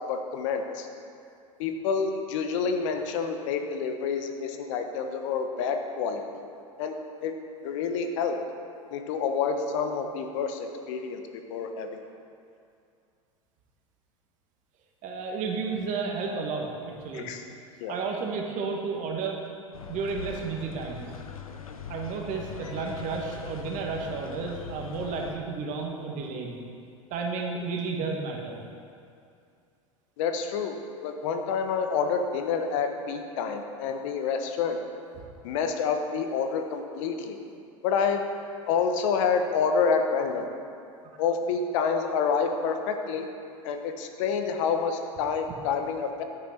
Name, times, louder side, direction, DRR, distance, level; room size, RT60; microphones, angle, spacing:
voice 1, 0.1-0.9 1.6-6.2 6.8-6.9 7.2-7.3 7.6-8.4 8.9-11.2 11.5-11.9 17.1-17.4 17.8-17.9 30.2-30.8 31.0-34.8 35.4-37.4 37.8-38.2 38.7-40.4 41.2-43.3 43.6-46.2, left 6 dB, 65° left, 6 dB, 1.0 m, -28 dB
voice 2, 15.0-17.3 17.9-19.4 19.9-21.1 21.9-26.6 27.1-28.6 35.2-35.3, right 4 dB, 45° right, 1 dB, 1.7 m, -32 dB
sound 1, 19.7-25.3, left 6 dB, 90° left, 0.7 m, -41 dB
9.5 x 8.6 x 4.4 m, 2.5 s
hypercardioid pair, 90°, 18 cm